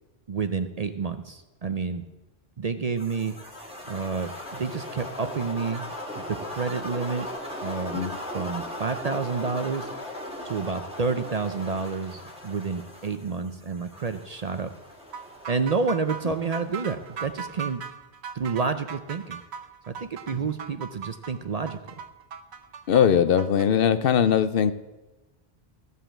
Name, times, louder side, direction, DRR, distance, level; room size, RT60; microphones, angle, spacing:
voice 1, 0.3-2.0 2.6-3.4 3.9-5.9 6.2-7.3 7.6-8.0 8.3-9.9 10.4-14.7 15.5-17.8 18.3-19.4 19.9-21.8, right 5 dB, 45° right, 9 dB, 0.6 m, -29 dB
sound 1, 3.0-17.3, left 1 dB, 5° right, 1.6 m, -38 dB
sound 2, 15.1-23.7, right 7 dB, 80° right, 1.1 m, -39 dB
voice 2, 22.9-24.7, left 8 dB, 65° left, 12 dB, 0.7 m, -21 dB
15.0 x 5.5 x 7.4 m, 1.1 s
omnidirectional pair, 1.1 m